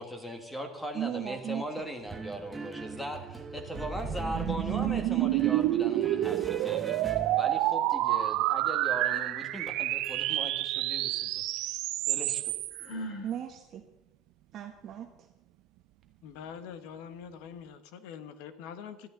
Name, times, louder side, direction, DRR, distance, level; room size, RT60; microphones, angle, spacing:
voice 1, 0.0-11.8 12.1-12.5, right 1 dB, 5° left, 6 dB, 1.6 m, -39 dB
voice 2, 0.9-1.9 10.0-11.3 13.2-13.8 14.5-15.3, right 10 dB, 35° right, 4 dB, 1.0 m, -38 dB
sound 1, 2.1-7.8, right 2 dB, 10° right, 1.0 m, -40 dB
sound 2, 3.1-12.9, right 15 dB, 55° right, 0.6 m, -29 dB
Sigh, 12.7-13.4, equal, 45° left, 3.3 m, -38 dB
voice 3, 16.2-19.1, left 7 dB, 75° left, 11 dB, 1.2 m, -44 dB
21.0 x 13.0 x 3.8 m, 0.94 s
cardioid pair, 165°, 0 cm